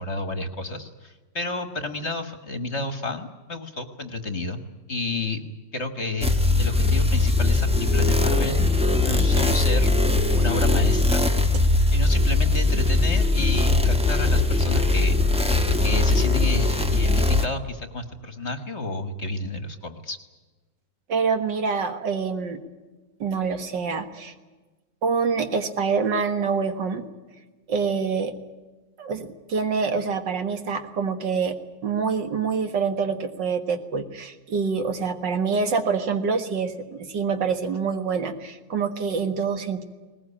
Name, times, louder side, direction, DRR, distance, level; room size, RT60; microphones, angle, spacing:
voice 1, 0.0-4.6 4.9-5.4 5.7-8.8 9.0-9.9 10.4-11.2 11.9-15.5 15.8-20.2, left 2 dB, 40° left, 9 dB, 1.6 m, -31 dB
sound 1, 6.2-17.5, left 2 dB, 5° right, 1.1 m, -20 dB
voice 2, 21.1-22.6 23.2-24.3 25.0-27.1 27.7-28.3 29.0-31.6 31.8-39.8, right 5 dB, 70° right, 7 dB, 2.3 m, -26 dB
20.5 x 19.5 x 9.9 m, 1.2 s
omnidirectional pair, 2.0 m